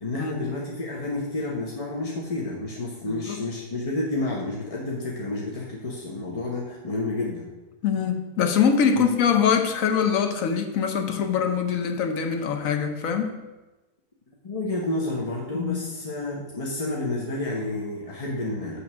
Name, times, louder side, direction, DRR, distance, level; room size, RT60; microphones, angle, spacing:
voice 1, 0.0-7.5 8.9-9.1 14.4-18.8, left 2 dB, 30° left, -3 dB, 0.7 m, -30 dB
voice 2, 3.1-3.4 7.8-13.4 15.5-15.9, left 7 dB, 65° left, 6 dB, 1.1 m, -23 dB
8.3 x 3.3 x 6.1 m, 1.1 s
omnidirectional pair, 1.7 m